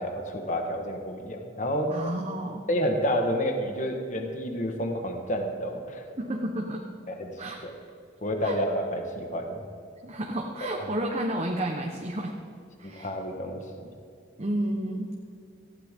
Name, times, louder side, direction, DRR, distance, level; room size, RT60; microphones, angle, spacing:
voice 1, 0.0-1.9 2.7-6.0 7.1-7.3 7.6-7.7 8.2-9.6 10.6-10.9 12.8-13.6, equal, 40° left, 3 dB, 1.5 m, -29 dB
voice 2, 1.9-2.7 6.2-6.9 7.4-7.6 8.4-8.5 10.0-12.3 12.8-13.1 14.4-15.2, right 1 dB, 35° right, 0 dB, 1.1 m, -31 dB
18.0 x 15.5 x 3.8 m, 2.5 s
head